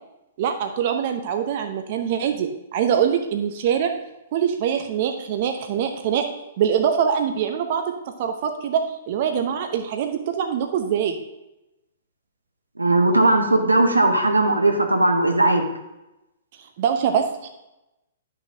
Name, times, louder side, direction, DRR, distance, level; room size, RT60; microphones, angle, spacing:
voice 1, 0.4-3.9 4.3-6.3 6.6-7.8 8.2-11.2 16.8-17.5, right 8 dB, 45° right, 6 dB, 0.8 m, -23 dB
voice 2, 12.8-15.7, right 2 dB, 90° right, 5 dB, 1.0 m, -18 dB
11.0 x 6.3 x 2.8 m, 0.93 s
figure-of-eight pair, 115°, 0 cm